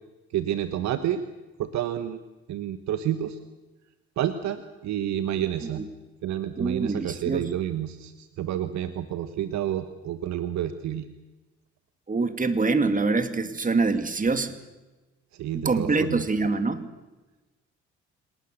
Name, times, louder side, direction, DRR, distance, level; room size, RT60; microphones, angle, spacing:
voice 1, 0.3-1.2 1.6-2.2 2.5-3.4 4.2-5.8 6.2-11.1 15.3-16.3, right 11 dB, 55° right, 11 dB, 1.3 m, -29 dB
voice 2, 6.6-7.5 12.1-14.6 15.5-16.9, right 3 dB, 25° right, 10 dB, 2.3 m, -25 dB
29.5 x 19.0 x 6.7 m, 1.1 s
figure-of-eight pair, 45°, 33 cm